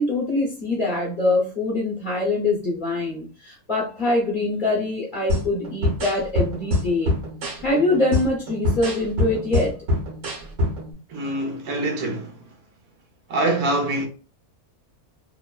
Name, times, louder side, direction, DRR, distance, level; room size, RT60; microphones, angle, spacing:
voice 1, 0.0-7.1 7.6-9.7, left 2 dB, 45° left, 0.7 m, -23 dB
sound 1, 5.3-10.9, left 2 dB, 60° right, 1.3 m, -26 dB
voice 2, 11.1-12.5 13.3-14.1, right 2 dB, 80° right, 1.3 m, -25 dB
3.0 x 2.0 x 2.2 m
omnidirectional pair, 1.6 m